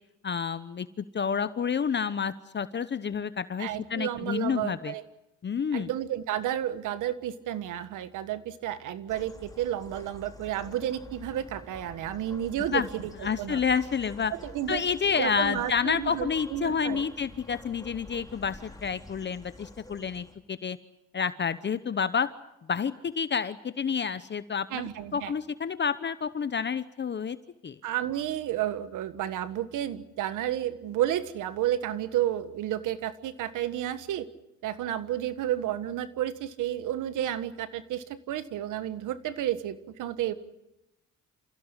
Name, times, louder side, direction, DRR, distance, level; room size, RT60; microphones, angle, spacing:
voice 1, 0.2-0.9 1.1-4.9 5.4-5.9 12.7-12.9 13.2-14.3 14.7-20.8 21.1-22.3 22.7-24.8 25.1-27.4 27.6-27.8, left 6 dB, 35° left, 13 dB, 0.9 m, -29 dB
voice 2, 3.6-5.0 5.7-13.6 14.3-14.8 15.2-17.0 24.7-25.3 27.8-34.3 34.6-40.3, right 12 dB, 85° right, 13 dB, 1.5 m, -31 dB
sound 1, 9.1-20.4, left 2 dB, 10° left, 3.2 m, -48 dB
28.0 x 16.5 x 9.9 m, 0.93 s
cardioid pair, 90°, 30 cm